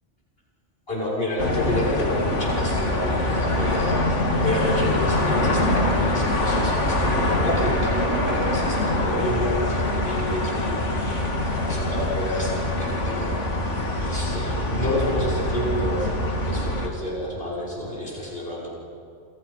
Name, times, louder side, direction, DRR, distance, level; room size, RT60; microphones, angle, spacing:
voice 1, 0.9-13.3 14.0-16.1 16.4-18.7, equal, 55° left, -4 dB, 7.1 m, -29 dB
sound 1, 1.4-16.9, left 1 dB, 85° left, 2.9 m, -24 dB
29.5 x 29.5 x 5.9 m, 2.6 s
omnidirectional pair, 1.2 m